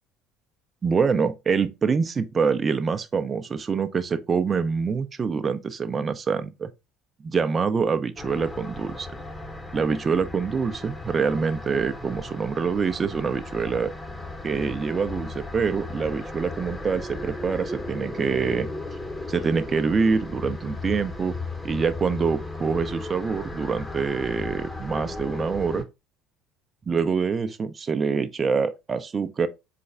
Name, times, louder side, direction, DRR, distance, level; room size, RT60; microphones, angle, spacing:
voice 1, 0.8-6.7 7.2-9.1 9.7-13.9 14.4-18.7 19.3-21.3 21.6-25.9 26.9-29.5, right 5 dB, 30° right, 0.5 m, -25 dB
sound 1, 8.2-25.8, left 2 dB, 15° left, 0.9 m, -36 dB
3.8 x 3.3 x 3.7 m
hypercardioid pair, 70°, 0 cm